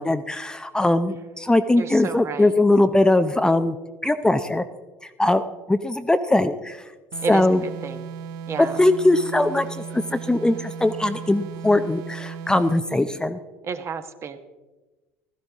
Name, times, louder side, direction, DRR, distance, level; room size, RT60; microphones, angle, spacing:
voice 1, 0.0-3.8 4.0-4.6 5.2-5.4 5.7-6.8 7.3-7.6 8.6-13.4, left 2 dB, 10° left, 10 dB, 0.7 m, -20 dB
voice 2, 1.7-2.5 7.2-7.4 7.8-8.0 8.5-8.8 13.7-14.4, right 5 dB, 35° right, 8 dB, 1.3 m, -31 dB
sound 1, 7.1-12.9, right 7 dB, 60° right, 0.7 m, -36 dB
16.0 x 13.5 x 3.6 m, 1.2 s
hypercardioid pair, 65°, 8 cm